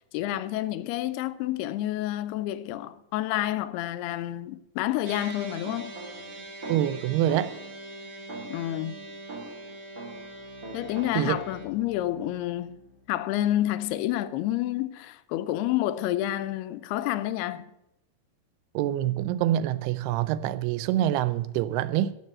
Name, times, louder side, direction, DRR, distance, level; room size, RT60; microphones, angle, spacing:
voice 1, 0.1-6.0 8.5-9.0 10.7-12.8 13.1-17.7, left 14 dB, 85° left, 2.6 m, -29 dB
sound 1, 5.0-11.6, right 2 dB, 50° right, 1.0 m, -43 dB
sound 2, 5.6-7.8 8.3-10.4 10.6-11.8, right 2 dB, 35° right, 1.4 m, -42 dB
voice 2, 6.7-7.5 11.2-11.4 18.7-22.1, right 12 dB, 85° right, 2.6 m, -26 dB
Bowed string instrument, 10.0-13.5, left 6 dB, 40° left, 1.5 m, -53 dB
12.0 x 6.7 x 7.4 m
omnidirectional pair, 4.5 m